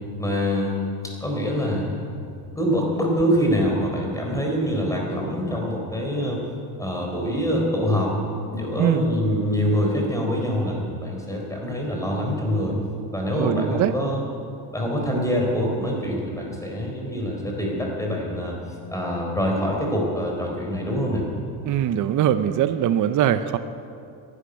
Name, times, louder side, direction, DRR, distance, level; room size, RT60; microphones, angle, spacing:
voice 1, 0.2-0.8 1.0-2.0 2.6-6.4 6.8-8.1 8.5-12.8 13.1-14.2 14.7-18.6 18.9-21.2, equal, 10° left, 0 dB, 4.1 m, -25 dB
voice 2, 13.3-13.9 21.7-23.6, right 10 dB, 45° right, 11 dB, 0.7 m, -21 dB
12.0 x 11.5 x 10.0 m, 2.5 s
cardioid pair, 115°, 41 cm